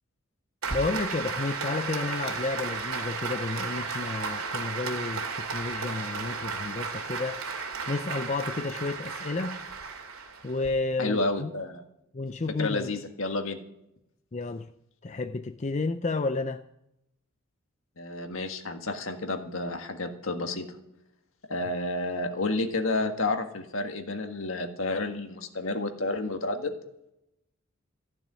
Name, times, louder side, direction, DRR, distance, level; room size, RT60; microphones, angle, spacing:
Applause, 0.6-10.7, right 4 dB, 90° right, 2.5 m, -34 dB
voice 1, 0.7-7.4 7.9-9.6 10.4-11.5 12.1-12.9 14.3-14.7 15.0-16.6, left 3 dB, 35° left, 9 dB, 0.5 m, -31 dB
voice 2, 11.0-11.8 12.6-13.6 18.0-20.7 21.5-26.7, left 2 dB, 70° left, 6 dB, 1.7 m, -30 dB
15.0 x 7.0 x 9.9 m, 0.84 s
head